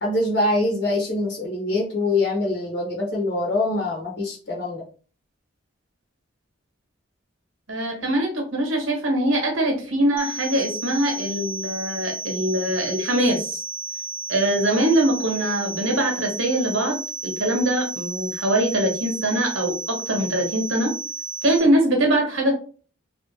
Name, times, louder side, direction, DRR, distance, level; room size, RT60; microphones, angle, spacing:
voice 1, 0.0-4.8, left 2 dB, 55° left, -3 dB, 0.9 m, -24 dB
voice 2, 7.7-13.6 14.3-20.9 21.4-22.5, right 1 dB, 85° right, 2 dB, 1.2 m, -22 dB
sound 1, 10.2-21.6, right 3 dB, 30° left, 0.9 m, -33 dB
3.2 x 2.5 x 3.2 m, 0.39 s
head